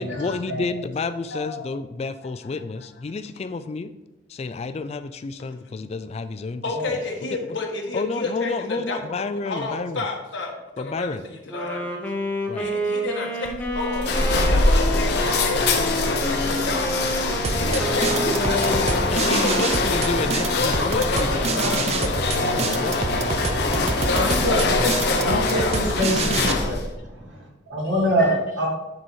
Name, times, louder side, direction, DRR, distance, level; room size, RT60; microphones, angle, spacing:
voice 1, 0.0-3.9 4.3-6.6 7.3-7.6 7.9-10.1 10.8-11.2 12.5-12.7 19.1-23.1, left 4 dB, 35° left, 12 dB, 0.3 m, -30 dB
voice 2, 1.3-1.7 2.5-2.6 6.6-12.0 12.4-17.2 17.5-18.5 19.3-19.7 20.5-23.0 24.1-25.8 28.2-28.4, left 2 dB, 75° left, 1 dB, 1.4 m, -30 dB
Wind instrument woodwind instrument, 11.5-20.1, equal, 10° left, 0.9 m, -29 dB
sound 1, 13.4-26.9, left 3 dB, 55° left, 1.0 m, -23 dB
sound 2, 17.4-26.5, right 3 dB, 35° right, 0.5 m, -27 dB
voice 3, 18.3-18.6 24.1-24.6 25.2-28.7, equal, 80° right, -4 dB, 3.0 m, -25 dB
9.7 x 4.1 x 4.6 m, 0.97 s
head